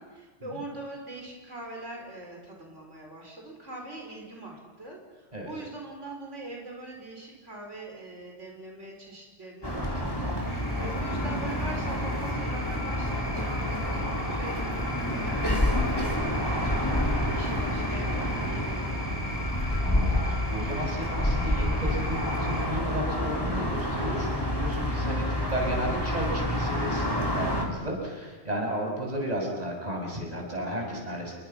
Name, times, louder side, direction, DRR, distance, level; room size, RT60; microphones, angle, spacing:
voice 1, 0.0-19.1 27.2-27.7, right 2 dB, 80° right, 0 dB, 5.2 m, -42 dB
sound 1, 9.6-27.7, left 1 dB, 20° left, 4.3 m, -28 dB
sound 2, 10.5-22.7, left 1 dB, 5° right, 5.6 m, -42 dB
voice 2, 19.8-31.3, right 1 dB, 35° right, 0 dB, 6.7 m, -33 dB
29.0 x 24.5 x 6.0 m, 1.3 s
omnidirectional pair, 1.2 m